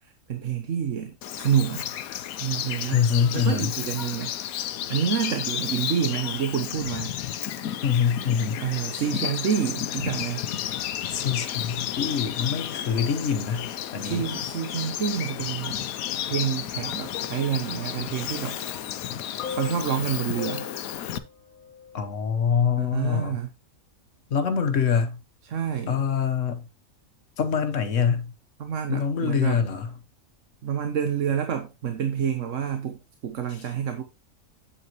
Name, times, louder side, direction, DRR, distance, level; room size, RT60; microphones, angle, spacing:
voice 1, 0.0-1.9 2.4-3.0 3.3-4.4 4.9-7.1 8.6-10.5 14.0-15.8 16.3-18.6 19.5-20.7 22.8-23.5 25.4-26.0 28.6-29.6 30.6-34.0, right 8 dB, 65° right, 1.2 m, -28 dB
Bird vocalization bird call bird song, 1.2-21.2, left 11 dB, 80° left, 1.1 m, -32 dB
voice 2, 2.9-3.7 7.8-8.6 11.1-14.2 21.9-23.4 24.3-25.2 25.9-26.7 27.4-28.3 28.9-29.9, left 7 dB, 60° left, 1.4 m, -25 dB
sound 1, 17.1-22.2 23.1-23.3, left 6 dB, 35° left, 1.4 m, -41 dB
8.7 x 7.9 x 3.0 m
omnidirectional pair, 1.5 m